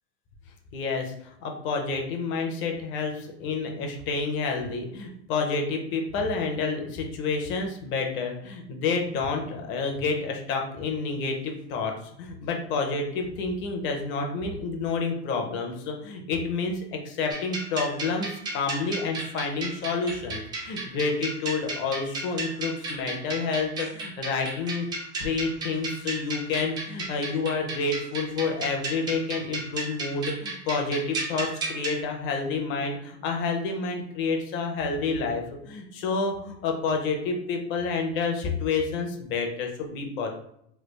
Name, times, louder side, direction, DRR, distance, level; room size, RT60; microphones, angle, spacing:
voice 1, 0.7-11.9 12.2-24.9 25.2-40.3, left 4 dB, 35° left, 2 dB, 0.6 m, -29 dB
sound 1, 17.3-32.0, right 2 dB, 15° right, 0.3 m, -34 dB
3.3 x 2.3 x 3.2 m, 0.74 s
supercardioid pair, 145°, 33 cm